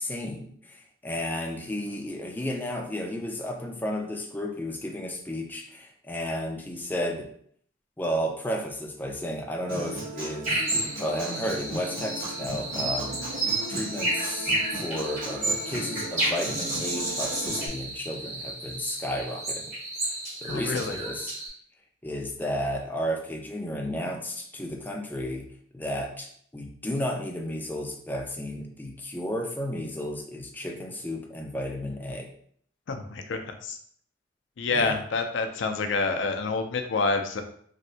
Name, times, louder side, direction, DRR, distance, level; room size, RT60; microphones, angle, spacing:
voice 1, 0.0-7.3 8.0-14.5 14.8-19.7 20.0-21.3 22.0-25.5 25.7-32.3 34.7-35.0, equal, 10° left, 2 dB, 0.4 m, -33 dB
Human voice / Acoustic guitar, 9.7-17.7, right 1 dB, 90° right, 1.5 m, -37 dB
sound 1, 10.4-21.5, right 2 dB, 40° right, 1.3 m, -31 dB
voice 2, 20.5-21.0 32.9-33.8 34.6-37.4, left 3 dB, 70° left, 6 dB, 0.4 m, -28 dB
3.1 x 2.6 x 2.7 m, 0.62 s
head